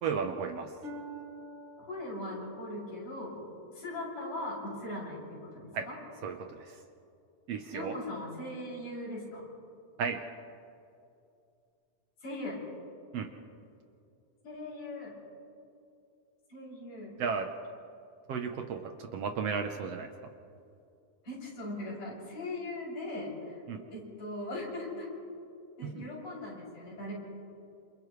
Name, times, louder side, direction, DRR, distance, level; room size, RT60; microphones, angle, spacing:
voice 1, 0.0-0.7 5.7-5.9 6.2-6.8 7.5-8.0 10.0-10.3 13.1-13.3 17.2-17.5 18.3-20.1 23.7-23.8 25.8-26.0, right 6 dB, 65° right, 5 dB, 1.7 m, -34 dB
Harp, 0.8-4.6 5.1-5.5 6.2-6.3, right 1 dB, 35° right, 4.5 m, -49 dB
voice 2, 1.8-3.4 3.7-5.9 7.7-9.4 12.2-12.6 14.4-15.2 16.5-17.2 21.2-23.6 23.9-25.1 25.8-27.1, left 1 dB, 80° left, -6 dB, 8.4 m, -39 dB
28.5 x 28.0 x 3.2 m, 2.6 s
omnidirectional pair, 3.5 m